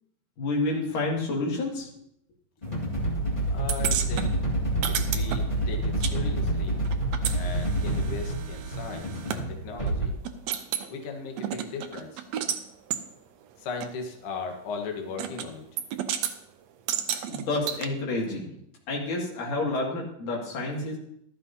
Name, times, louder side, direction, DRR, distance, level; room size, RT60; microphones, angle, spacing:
voice 1, 0.4-1.9 17.3-18.5 18.9-21.0, left 2 dB, 90° left, -2 dB, 3.9 m, -29 dB
sound 1, 2.6-10.1, right 1 dB, 20° left, 1.4 m, -28 dB
voice 2, 3.5-4.4 4.9-6.8 7.3-10.1 10.9-12.2 13.6-15.6, left 4 dB, 55° left, 3 dB, 1.9 m, -37 dB
sound 2, 3.7-6.2 6.4-9.4 9.9-10.0 10.2-10.9 11.4-12.6 12.9-13.0 13.8-13.9 15.2-15.5 15.8-16.3 16.9-17.9, right 9 dB, 75° right, 1.6 m, -32 dB
13.5 x 13.0 x 2.8 m, 0.72 s
omnidirectional pair, 3.7 m